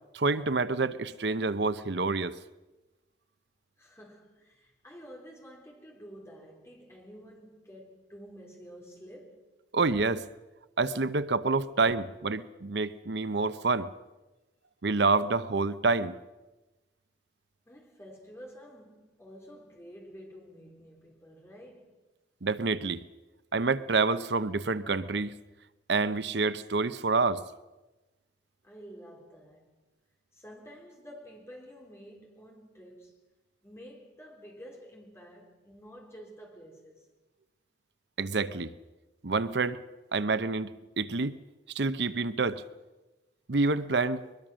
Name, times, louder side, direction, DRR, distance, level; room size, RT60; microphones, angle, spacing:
voice 1, 0.1-2.4 9.7-10.3 10.8-13.9 14.8-16.1 22.4-23.0 23.5-25.3 25.9-27.4 38.2-38.7 39.2-39.8 40.1-41.4 41.7-42.6 43.5-44.2, right 3 dB, 60° right, 0.8 m, -27 dB
voice 2, 3.8-9.4 17.6-22.0 28.6-29.8 30.3-33.2 33.6-37.1, equal, 15° left, 3.9 m, -50 dB
22.0 x 21.5 x 6.3 m
head